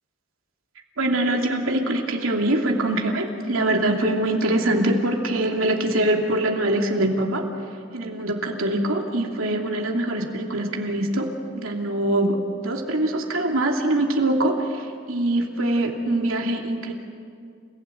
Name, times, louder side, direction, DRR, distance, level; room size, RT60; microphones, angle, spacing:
voice 1, 1.0-7.4 7.9-11.3 11.5-16.9, right 1 dB, 85° right, 1 dB, 2.8 m, -23 dB
29.5 x 16.5 x 9.2 m, 2.3 s
head